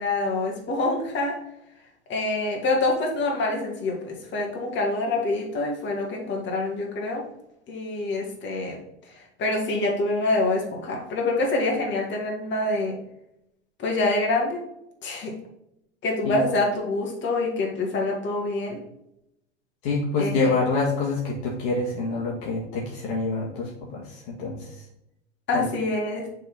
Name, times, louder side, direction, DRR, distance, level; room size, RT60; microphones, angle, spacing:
voice 1, 0.0-1.3 2.1-7.2 7.7-8.8 9.4-13.0 13.8-14.6 15.0-15.3 16.0-18.8 20.2-20.5 25.5-26.3, left 2 dB, 35° left, -1 dB, 2.2 m, -26 dB
voice 2, 19.8-24.7 25.5-25.7, left 3 dB, 55° left, -3 dB, 1.9 m, -26 dB
6.7 x 4.2 x 4.1 m, 0.81 s
figure-of-eight pair, 85°, 33 cm